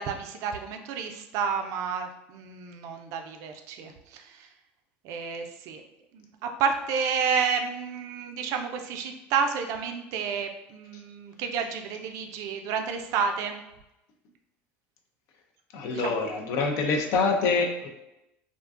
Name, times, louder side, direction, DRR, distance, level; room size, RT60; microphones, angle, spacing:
voice 1, 0.0-4.5 5.0-5.8 6.1-13.6 15.9-16.2, right 6 dB, 60° right, 5 dB, 0.3 m, -30 dB
voice 2, 15.7-17.9, left 4 dB, 65° left, 4 dB, 0.4 m, -25 dB
2.4 x 2.2 x 2.4 m, 0.91 s
hypercardioid pair, 85°, 6 cm